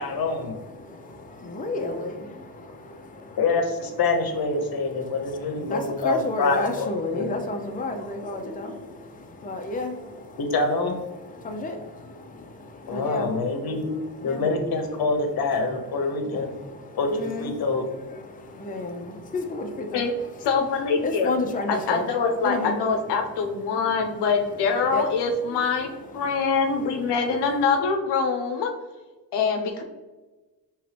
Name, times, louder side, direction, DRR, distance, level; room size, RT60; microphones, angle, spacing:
voice 1, 0.0-0.6 3.4-7.3 10.4-10.9 12.9-13.9 14.2-16.5 17.0-17.8, left 3 dB, 65° left, 4 dB, 0.9 m, -26 dB
voice 2, 0.7-3.4 5.0-10.4 11.2-13.3 14.2-14.4 16.4-17.6 18.1-20.5 21.0-22.8 23.7-24.1 24.9-25.1 25.6-27.0, left 2 dB, 20° left, 4 dB, 0.6 m, -32 dB
voice 3, 20.4-21.3 21.7-25.9 26.1-28.7 29.3-29.8, left 5 dB, 85° left, 3 dB, 0.6 m, -24 dB
4.5 x 3.1 x 3.3 m, 1.2 s
cardioid pair, 70°, 40 cm